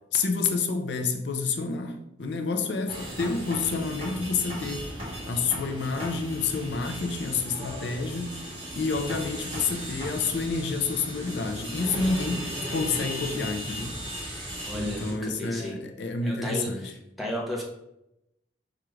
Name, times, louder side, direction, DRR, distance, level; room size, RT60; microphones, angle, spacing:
voice 1, 0.1-4.9 5.3-14.0 14.7-16.9, left 4 dB, 80° left, 5 dB, 0.6 m, -29 dB
sound 1, 2.2-11.4, right 4 dB, 50° right, 0.9 m, -51 dB
sound 2, 2.9-15.1, equal, 30° right, 1.7 m, -36 dB
voice 2, 14.6-15.8 16.2-16.9 17.2-17.6, equal, ahead, -3 dB, 1.0 m, -33 dB
4.4 x 2.5 x 4.9 m, 0.85 s
head